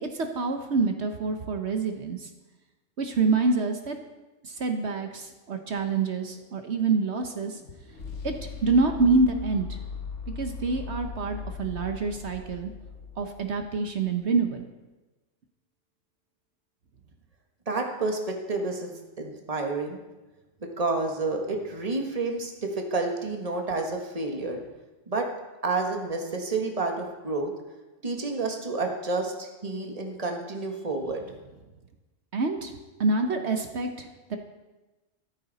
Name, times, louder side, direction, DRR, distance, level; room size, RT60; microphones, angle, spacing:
voice 1, 0.0-2.3 3.0-4.0 4.4-7.6 8.2-8.3 8.6-9.7 10.4-12.7 13.2-14.6 32.3-32.7 33.0-34.4, right 3 dB, 65° right, 5 dB, 1.3 m, -26 dB
sound 1, 5.8-13.9, left 5 dB, 75° left, 1.6 m, -40 dB
voice 2, 17.7-20.0 20.6-24.6 25.1-25.3 25.6-27.5 28.0-31.2, right 3 dB, 30° right, 2 dB, 1.7 m, -30 dB
14.0 x 13.5 x 4.1 m, 1.1 s
omnidirectional pair, 1.3 m